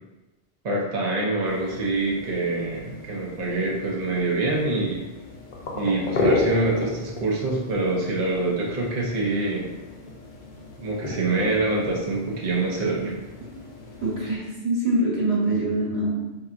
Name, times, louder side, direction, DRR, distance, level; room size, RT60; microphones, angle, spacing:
voice 1, 0.6-5.0 5.7-9.7 10.8-13.2, right 2 dB, 45° right, -3 dB, 0.7 m, -25 dB
sound 1, 1.5-14.3, left 2 dB, 55° left, 0.7 m, -33 dB
voice 2, 14.0-16.3, right 2 dB, 75° right, -6 dB, 1.5 m, -24 dB
4.6 x 2.7 x 2.4 m, 1.1 s
omnidirectional pair, 1.1 m